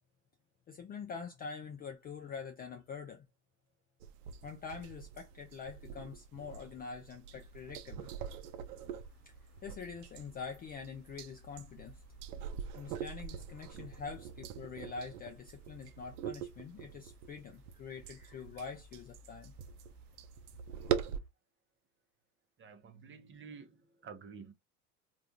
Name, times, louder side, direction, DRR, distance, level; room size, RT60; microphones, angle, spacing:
voice 1, 0.7-3.3 4.4-8.1 9.3-9.4 9.6-12.0 12.7-19.5, left 5 dB, 20° left, 0.3 m, -45 dB
sound 1, 4.0-21.2, right 9 dB, 75° right, 0.6 m, -43 dB
sound 2, 7.3-21.3, right 1 dB, 45° left, 1.4 m, -59 dB
voice 2, 22.6-24.5, right 5 dB, 25° right, 0.8 m, -51 dB
3.3 x 2.5 x 2.5 m
hypercardioid pair, 85°, 46 cm